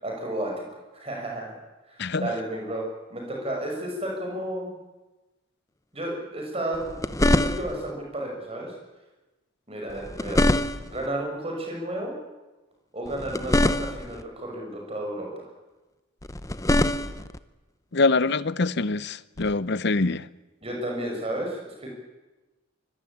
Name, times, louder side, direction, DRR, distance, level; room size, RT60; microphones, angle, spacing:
voice 1, 0.0-0.6 0.9-1.6 1.9-4.7 5.9-8.7 9.7-10.5 10.9-12.2 12.9-15.5 20.6-21.9, right 1 dB, 25° right, 6.4 m, -32 dB
voice 2, 2.0-2.3 17.9-20.3, left 3 dB, 50° left, 0.7 m, -24 dB
sound 1, 6.7-7.9 9.9-11.1 13.1-14.2 16.2-17.4 19.4-19.5, left 1 dB, 15° left, 0.8 m, -24 dB
24.5 x 22.5 x 8.7 m
head